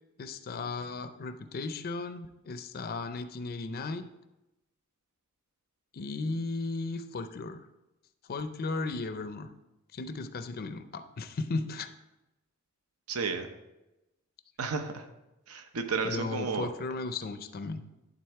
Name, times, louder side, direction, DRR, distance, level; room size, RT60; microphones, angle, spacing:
voice 1, 0.2-4.0 5.9-7.7 8.3-9.5 9.9-11.9 16.0-17.8, left 3 dB, 45° left, 10 dB, 0.5 m, -35 dB
voice 2, 13.1-13.5 14.6-15.1 15.5-16.7, right 5 dB, 80° right, 7 dB, 0.8 m, -32 dB
11.5 x 4.0 x 4.6 m, 0.96 s
head